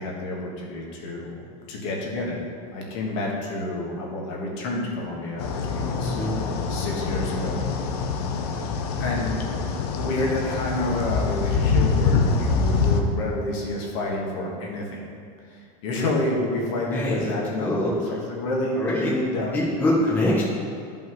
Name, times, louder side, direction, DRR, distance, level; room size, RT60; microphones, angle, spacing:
voice 1, 0.0-2.4 2.7-6.2 6.7-7.6 8.4-8.5 9.0-9.3 10.0-15.0 15.5-19.6, left 2 dB, 50° left, -2 dB, 1.6 m, -29 dB
sound 1, 5.4-13.0, left 5 dB, 70° left, 0.8 m, -25 dB
voice 2, 6.0-6.3 16.9-17.2 17.6-18.2 18.8-19.1 19.5-20.4, left 1 dB, 10° left, -7 dB, 0.9 m, -24 dB
13.0 x 5.5 x 3.1 m, 2.3 s
supercardioid pair, 180°, 21 cm